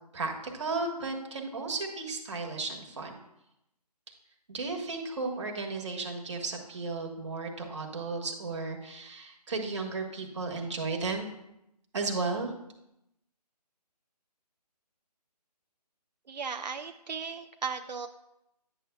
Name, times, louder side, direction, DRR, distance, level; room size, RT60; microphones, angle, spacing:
voice 1, 0.1-3.2 4.5-11.3 11.9-12.5, right 3 dB, 45° right, 2 dB, 1.3 m, -34 dB
voice 2, 16.3-18.1, right 5 dB, 85° right, 6 dB, 0.5 m, -36 dB
9.8 x 7.0 x 2.3 m, 0.84 s
figure-of-eight pair, 160°, 21 cm